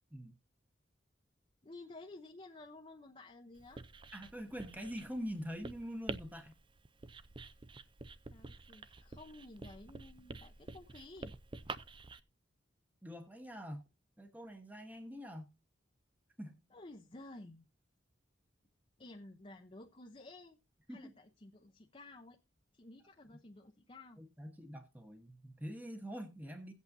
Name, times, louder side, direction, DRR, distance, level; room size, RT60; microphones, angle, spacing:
voice 1, 1.6-3.8 8.3-11.3 16.7-17.7 19.0-20.6 20.9-22.4 22.7-24.2, left 2 dB, 30° left, 0.7 m, -53 dB
Writing, 3.6-12.2, right 3 dB, 25° right, 0.5 m, -49 dB
voice 2, 4.1-6.5 13.0-13.8 14.2-15.5 16.4-16.6 20.9-21.1 24.2-26.7, equal, 10° right, 1.0 m, -45 dB
17.0 x 8.3 x 2.7 m
head